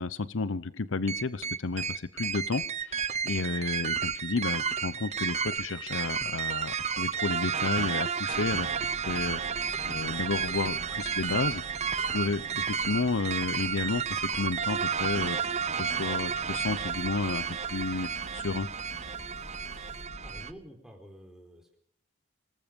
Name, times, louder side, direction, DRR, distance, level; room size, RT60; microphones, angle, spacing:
voice 1, 0.0-9.4 9.8-11.6 12.1-18.7, left 3 dB, 80° left, 17 dB, 0.8 m, -32 dB
sound 1, 1.1-20.5, right 7 dB, 35° right, 0.7 m, -32 dB
sound 2, 6.7-20.0, left 3 dB, 30° left, 2.9 m, -59 dB
sound 3, 8.3-20.4, left 1 dB, 60° left, 4.0 m, -47 dB
voice 2, 20.2-21.8, equal, 5° right, 3 dB, 4.4 m, -49 dB
25.5 x 19.5 x 5.3 m, 0.66 s
head